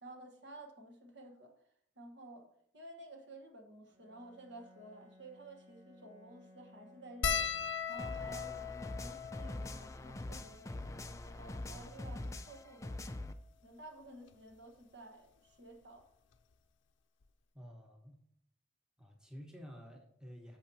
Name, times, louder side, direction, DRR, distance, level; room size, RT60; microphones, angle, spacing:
voice 1, 0.0-1.5 2.0-2.5 2.7-7.5 7.9-10.9 11.4-13.2 13.6-16.1, right 2 dB, 60° right, 3 dB, 1.3 m, -53 dB
Bowed string instrument, 3.8-8.3, left 1 dB, 40° right, 1.8 m, -62 dB
sound 1, 7.2-11.8 12.6-12.7 12.9-13.1 14.3-14.6 16.0-16.1 16.3-16.5, left 7 dB, 70° left, 0.5 m, -39 dB
sound 2, 8.0-13.3, left 1 dB, 15° left, 0.3 m, -43 dB
voice 2, 17.5-18.2 19.0-20.6, equal, 5° right, 0 dB, 1.1 m, -51 dB
11.0 x 6.9 x 2.8 m, 0.69 s
head